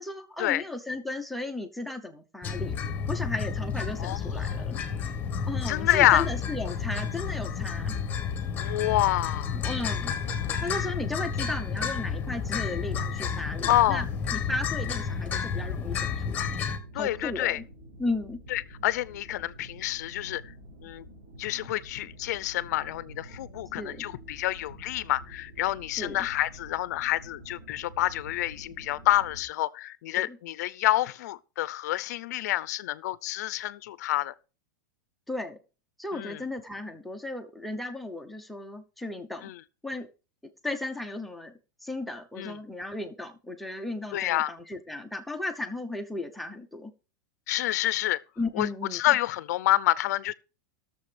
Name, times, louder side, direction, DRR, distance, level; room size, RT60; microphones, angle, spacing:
voice 1, 0.0-2.7 3.1-4.8 5.4-7.9 9.5-10.1 10.6-16.4 16.9-17.6 18.0-18.4 23.8-24.0 26.0-26.3 30.2-30.4 35.3-35.6 36.0-39.5 39.8-40.1 40.6-41.5 41.8-46.9 48.4-49.2, left 2 dB, ahead, 0.8 m, -35 dB
sound 1, 2.4-16.8, left 6 dB, 20° left, 1.3 m, -31 dB
voice 2, 4.0-4.6 5.7-6.2 8.6-9.6 13.7-14.0 16.9-17.6 18.5-20.4 20.8-21.1 21.4-34.3 36.1-36.4 39.4-39.6 42.4-42.6 44.1-44.5 47.5-48.2 48.6-50.3, left 15 dB, 65° left, 0.6 m, -28 dB
sound 2, 9.6-29.4, equal, 65° right, 5.2 m, -48 dB
18.5 x 6.9 x 3.4 m
supercardioid pair, 160°, 10 cm